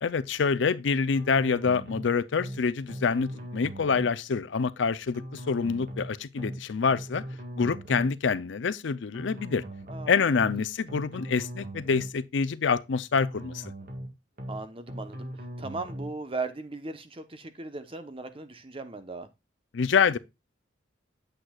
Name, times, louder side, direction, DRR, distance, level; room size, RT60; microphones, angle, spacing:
voice 1, 0.0-7.2 7.6-9.6 10.1-13.6 19.7-20.2, left 5 dB, 75° left, 0.5 m, -26 dB
sound 1, 1.1-2.1 2.4-2.6 2.9-4.1 5.1-6.1 6.4-6.6 6.9-8.1 9.1-10.1 10.4-10.6 10.9-12.1 13.1-14.1 14.4-14.6 14.9-16.1, equal, 50° right, 1.9 m, -39 dB
voice 2, 9.9-10.3 14.5-15.3 15.6-19.3, right 3 dB, 30° right, 0.9 m, -37 dB
8.9 x 7.8 x 2.3 m
head